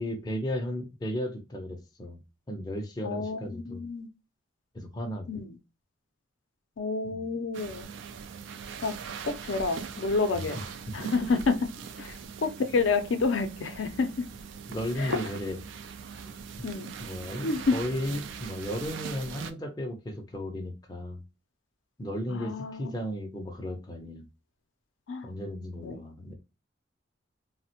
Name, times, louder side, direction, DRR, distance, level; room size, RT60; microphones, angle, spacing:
voice 1, 0.0-2.2 2.5-3.8 4.7-5.4 7.0-7.4 10.3-10.6 11.0-11.1 14.7-15.6 16.2-16.7 17.0-21.2 22.0-24.3 25.2-26.3, equal, 20° left, 0.5 m, -35 dB
voice 2, 3.0-4.1 5.3-5.6 6.8-7.9 8.8-8.9 9.2-10.6 10.9-11.6 12.0-14.3 15.0-15.2 16.6-16.9 17.4-17.8 22.3-22.9 25.1-25.3 25.8-25.9, left 4 dB, 75° left, 0.5 m, -29 dB
sound 1, 7.5-19.5, right 6 dB, 70° right, 0.3 m, -41 dB
3.3 x 2.1 x 2.7 m
head